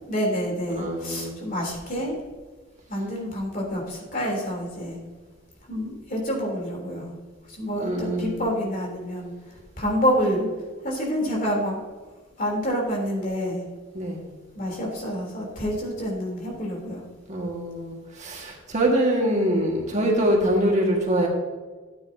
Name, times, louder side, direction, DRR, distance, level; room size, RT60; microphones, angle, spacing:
voice 1, 0.1-2.1 2.9-5.0 5.7-7.1 7.5-10.5 10.8-11.8 12.4-13.6 14.5-17.0, equal, 45° left, -1 dB, 3.4 m, -28 dB
voice 2, 0.7-1.4 7.8-8.5 13.9-14.3 17.3-21.3, right 1 dB, 35° right, -1 dB, 1.8 m, -24 dB
13.5 x 9.5 x 2.8 m, 1.3 s
head